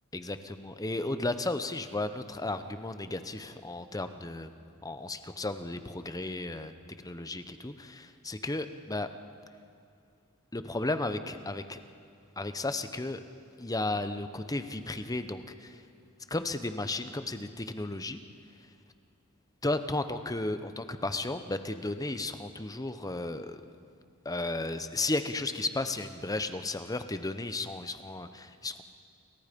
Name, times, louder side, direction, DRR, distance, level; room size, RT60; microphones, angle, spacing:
voice 1, 0.1-4.5 4.8-6.7 7.0-9.1 10.5-11.8 12.4-13.2 13.6-15.8 16.3-18.2 19.6-23.6 24.2-28.8, left 2 dB, 15° left, 10 dB, 0.9 m, -34 dB
30.0 x 23.0 x 5.3 m, 2.4 s
head